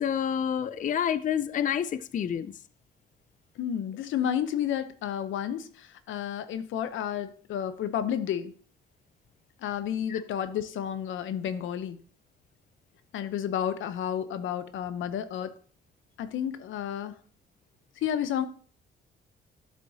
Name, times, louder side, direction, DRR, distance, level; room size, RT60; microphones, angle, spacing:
voice 1, 0.0-2.5 10.1-10.2, left 8 dB, 40° left, 0.4 m, -28 dB
voice 2, 3.6-8.5 9.6-12.0 13.1-15.5 16.2-17.1 18.0-18.5, left 9 dB, 80° left, 0.8 m, -31 dB
10.5 x 7.5 x 2.8 m
cardioid pair, 90°, 20 cm